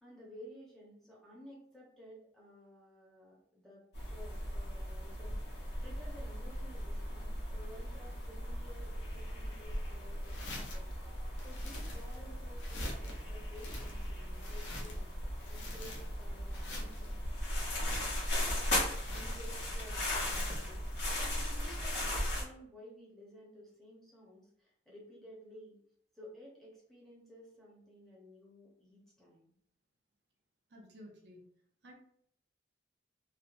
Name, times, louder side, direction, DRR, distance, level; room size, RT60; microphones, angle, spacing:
voice 1, 0.0-10.9 11.4-15.1 15.5-17.1 19.1-25.8 26.1-29.5, equal, ahead, -6 dB, 0.8 m, -54 dB
sound 1, 3.9-22.4, left 1 dB, 70° left, 1.1 m, -37 dB
sound 2, 10.2-10.9 11.4-12.3 12.6-13.2 13.5-15.1 15.4-16.2 16.5-17.2 17.7-18.5 18.8-19.8 20.2-20.8, left 2 dB, 90° left, 0.6 m, -48 dB
voice 2, 30.7-31.5 31.8-31.9, equal, 70° right, 0 dB, 0.6 m, -53 dB
3.2 x 2.0 x 2.5 m, 0.67 s
head